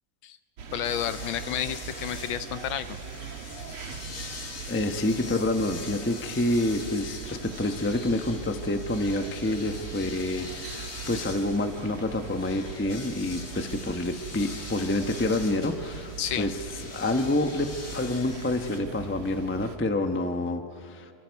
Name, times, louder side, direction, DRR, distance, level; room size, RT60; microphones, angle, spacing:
sound 1, 0.6-19.8, right 6 dB, 90° right, 2.3 m, -41 dB
voice 1, 0.7-3.0 16.2-16.5, left 10 dB, 70° left, 12 dB, 1.4 m, -31 dB
sound 2, 0.8-18.8, left 4 dB, 40° left, 2.1 m, -43 dB
voice 2, 4.7-16.5 16.9-21.1, left 2 dB, 15° left, 6 dB, 0.4 m, -28 dB
30.0 x 25.5 x 4.7 m, 2.4 s
omnidirectional pair, 2.4 m